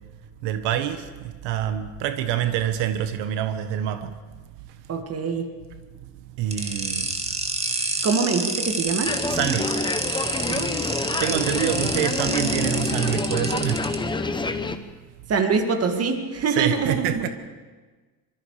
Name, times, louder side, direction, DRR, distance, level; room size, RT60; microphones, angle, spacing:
voice 1, 0.4-4.1 6.4-7.2 9.3-9.8 10.5-10.6 11.1-13.8 16.5-17.3, right 11 dB, 90° right, 1.5 m, -26 dB
voice 2, 4.9-5.5 8.0-9.1 10.5-10.8 15.3-17.2, right 5 dB, 35° right, 2.2 m, -24 dB
sound 1, 6.5-13.9, right 3 dB, 15° right, 2.0 m, -28 dB
sound 2, 9.1-14.8, left 3 dB, 10° left, 0.9 m, -27 dB
25.5 x 23.0 x 5.0 m
cardioid pair, 150°, 41 cm